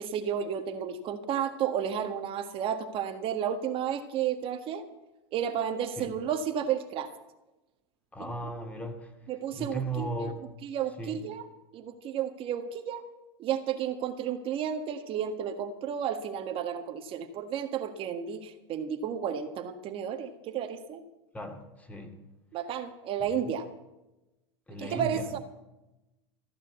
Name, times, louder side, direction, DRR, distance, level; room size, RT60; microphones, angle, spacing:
voice 1, 0.0-4.8 5.3-7.1 9.3-10.3 10.6-11.5 11.7-13.0 13.4-21.0 22.5-23.7 24.8-25.4, right 8 dB, 40° right, 1.6 m, -32 dB
voice 2, 8.1-9.1 9.5-10.3 11.0-11.2 21.3-22.2 23.2-23.5 24.7-25.3, right 2 dB, 10° left, 2.4 m, -36 dB
15.0 x 9.3 x 8.1 m
hypercardioid pair, 110°, 14 cm